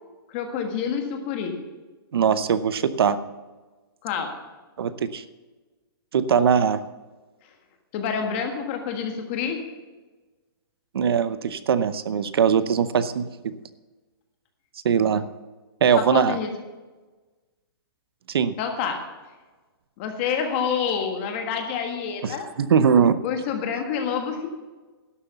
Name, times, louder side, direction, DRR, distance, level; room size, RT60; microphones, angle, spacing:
voice 1, 0.3-1.5 4.0-4.3 7.9-9.6 15.9-16.5 18.6-19.0 20.0-22.5 23.2-24.5, left 7 dB, 25° left, 5 dB, 1.5 m, -27 dB
voice 2, 2.1-3.2 4.8-5.2 6.1-6.8 10.9-13.6 14.8-15.3 15.8-16.4 18.3-18.5 22.2-23.1, right 7 dB, 75° right, 14 dB, 0.8 m, -21 dB
12.0 x 7.9 x 6.9 m, 1.3 s
hypercardioid pair, 175°, 13 cm